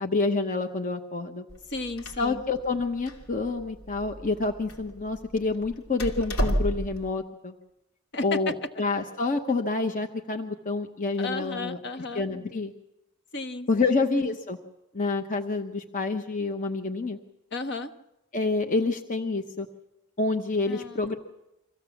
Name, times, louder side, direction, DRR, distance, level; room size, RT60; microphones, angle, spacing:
voice 1, 0.0-1.4 2.2-7.5 8.2-11.8 12.1-12.7 13.7-14.6 14.9-17.2 18.3-19.7 20.2-21.2, left 3 dB, 35° left, 5 dB, 1.0 m, -28 dB
Door, 1.5-7.1, equal, 85° left, 2.9 m, -33 dB
voice 2, 1.7-2.4 8.1-8.5 11.2-12.2 13.3-13.9 14.2-14.4 17.5-17.9 20.7-21.1, left 3 dB, 55° left, 7 dB, 1.2 m, -34 dB
24.5 x 16.0 x 7.1 m, 0.92 s
head